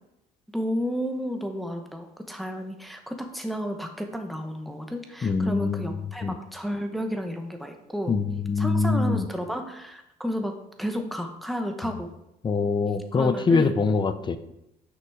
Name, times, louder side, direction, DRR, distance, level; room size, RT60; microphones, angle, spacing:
voice 1, 0.5-8.1 8.6-12.1 13.1-13.7, equal, ahead, 4 dB, 0.9 m, -32 dB
voice 2, 5.2-6.3 8.1-9.3 12.4-14.4, left 4 dB, 25° left, 11 dB, 0.6 m, -24 dB
6.1 x 6.0 x 4.7 m, 0.85 s
cardioid pair, 110°, 17 cm